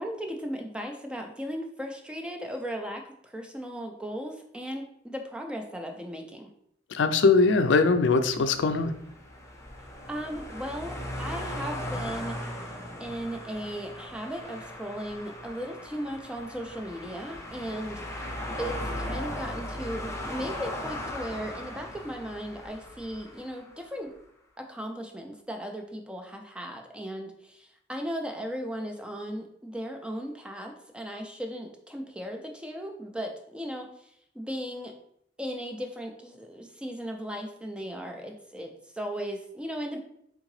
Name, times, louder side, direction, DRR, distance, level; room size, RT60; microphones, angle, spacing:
voice 1, 0.0-6.5 10.1-12.4 13.0-24.1 24.6-34.9 35.4-40.0, equal, 5° right, 2 dB, 0.3 m, -37 dB
voice 2, 6.9-8.9, left 4 dB, 70° left, 9 dB, 0.4 m, -21 dB
sound 1, 8.5-23.8, left 1 dB, 15° left, 0.7 m, -38 dB
3.7 x 3.6 x 3.1 m, 0.72 s
head